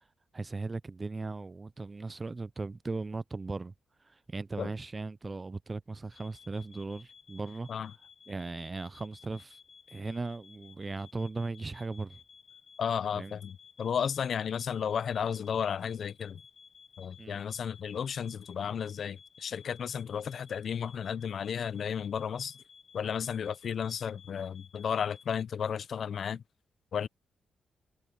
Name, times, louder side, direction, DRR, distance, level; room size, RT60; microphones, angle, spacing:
voice 1, 0.3-3.7 4.0-7.7 8.3-9.6 9.9-12.2 13.2-13.3 17.2-17.4, right 3 dB, 25° right, 0.4 m, -38 dB
sound 1, 6.1-25.4, left 6 dB, 45° left, 1.9 m, -57 dB
voice 2, 12.8-16.4 17.0-22.6 22.9-26.4 26.9-27.1, left 7 dB, 65° left, 0.5 m, -33 dB
cardioid pair, 90°, 0 cm